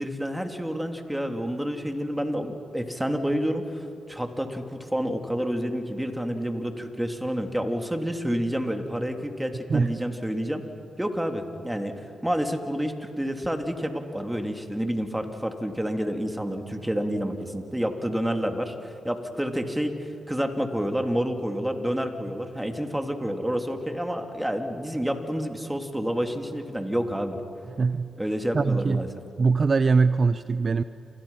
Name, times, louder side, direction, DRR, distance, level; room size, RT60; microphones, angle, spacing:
voice 1, 0.0-10.6 11.0-11.9 12.2-18.7 19.0-19.9 20.3-27.4 28.2-29.1, equal, 10° right, 5 dB, 3.4 m, -29 dB
voice 2, 9.7-10.0 27.8-28.1 28.5-29.1 29.4-30.8, right 4 dB, 50° right, 13 dB, 0.7 m, -22 dB
30.0 x 27.5 x 5.9 m, 2.7 s
hypercardioid pair, 40°, 0 cm